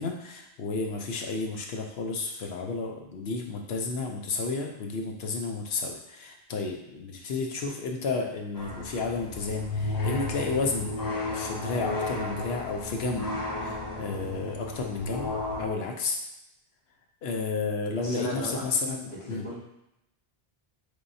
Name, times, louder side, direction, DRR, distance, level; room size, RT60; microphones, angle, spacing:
voice 1, 0.0-10.9 11.3-13.3 13.6-15.3 15.6-16.2 17.2-19.5, left 3 dB, 80° left, 2 dB, 0.9 m, -32 dB
sound 1, 8.6-15.7, left 2 dB, 30° left, 0.4 m, -33 dB
voice 2, 18.0-18.6 19.2-19.6, equal, 55° left, -8 dB, 1.6 m, -35 dB
4.5 x 3.4 x 2.6 m, 0.86 s
omnidirectional pair, 1.0 m